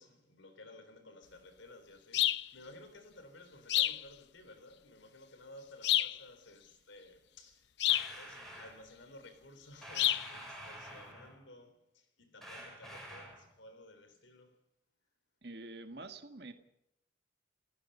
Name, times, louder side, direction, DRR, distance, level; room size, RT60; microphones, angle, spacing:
voice 1, 0.0-7.8 8.2-14.6, left 2 dB, 80° left, 3.8 m, -55 dB
sound 1, 2.1-2.5 3.7-4.0 5.8-6.2 7.8-8.1 10.0-10.3, left 14 dB, 65° left, 0.6 m, -28 dB
sound 2, 7.9-8.8 9.8-11.4 12.4-13.5, right 1 dB, ahead, 6.6 m, -48 dB
voice 2, 15.4-16.5, right 2 dB, 60° right, 1.7 m, -46 dB
30.0 x 16.0 x 5.6 m
head